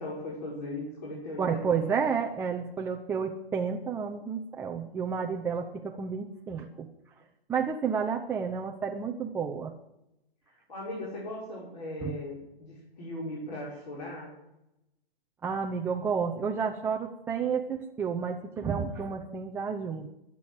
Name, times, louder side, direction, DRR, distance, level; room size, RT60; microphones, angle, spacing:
voice 1, 0.0-1.9 10.5-14.3, left 1 dB, 45° left, -4 dB, 5.9 m, -38 dB
voice 2, 1.4-6.9 7.5-9.7 12.0-12.2 15.4-20.1, right 6 dB, 5° right, 1 dB, 0.6 m, -31 dB
21.5 x 8.4 x 7.7 m, 0.89 s
figure-of-eight pair, 125°, 30 cm